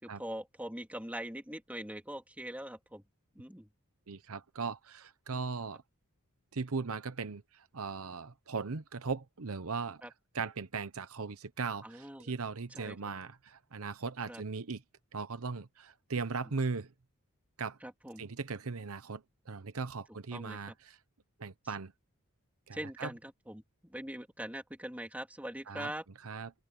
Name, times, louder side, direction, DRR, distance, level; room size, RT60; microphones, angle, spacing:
voice 1, 0.0-3.0 3.3-3.7 10.0-10.1 11.8-12.3 12.8-13.0 14.3-14.4 17.8-18.2 20.3-20.7 22.7-26.0, right 1 dB, 5° right, 3.0 m, -42 dB
voice 2, 4.1-5.8 6.5-10.0 10.3-14.8 15.1-16.9 17.6-17.8 18.2-21.0 21.4-21.9 22.7-23.1 25.7-25.9 26.2-26.5, right 4 dB, 75° right, 0.9 m, -38 dB
open air
head